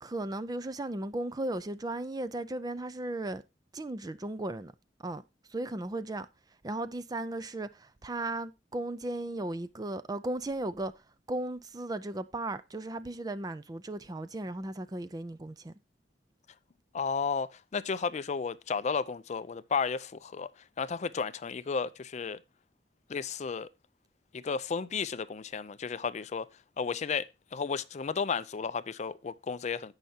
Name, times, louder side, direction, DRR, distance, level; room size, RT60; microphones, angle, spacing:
voice 1, 0.0-3.4 3.7-4.7 5.0-5.2 5.5-6.3 6.6-10.9 11.3-15.7, right 2 dB, 20° right, 0.5 m, -36 dB
voice 2, 16.9-22.4 23.1-23.7 24.3-26.5 26.8-29.9, left 5 dB, 40° left, 0.4 m, -33 dB
15.5 x 5.7 x 2.8 m
head